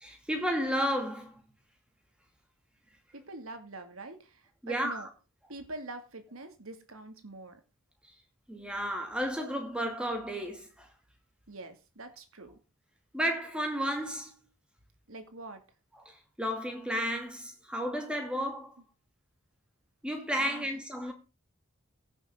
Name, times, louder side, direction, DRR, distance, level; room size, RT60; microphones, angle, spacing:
voice 1, 0.0-1.3 4.6-5.1 8.5-10.9 13.1-14.3 16.0-18.7 20.0-21.1, equal, 5° right, 2.4 m, -32 dB
voice 2, 3.1-5.1 5.5-7.6 11.5-12.6 15.1-15.6 20.4-20.7, right 2 dB, 85° right, 2.4 m, -45 dB
16.0 x 7.1 x 3.7 m
head